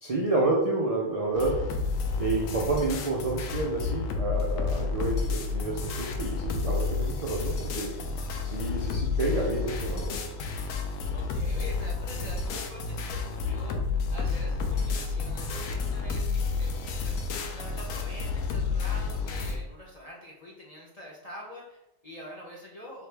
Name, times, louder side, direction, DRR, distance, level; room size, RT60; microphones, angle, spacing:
voice 1, 0.0-1.6 2.2-8.0 8.4-10.2, right 2 dB, 60° right, -3 dB, 0.3 m, -29 dB
sound 1, 1.3-19.6, left 4 dB, 80° left, 1.0 m, -30 dB
voice 2, 11.1-17.2 17.5-23.1, left 1 dB, 40° left, -4 dB, 0.6 m, -45 dB
4.4 x 2.5 x 3.3 m, 0.94 s
omnidirectional pair, 1.4 m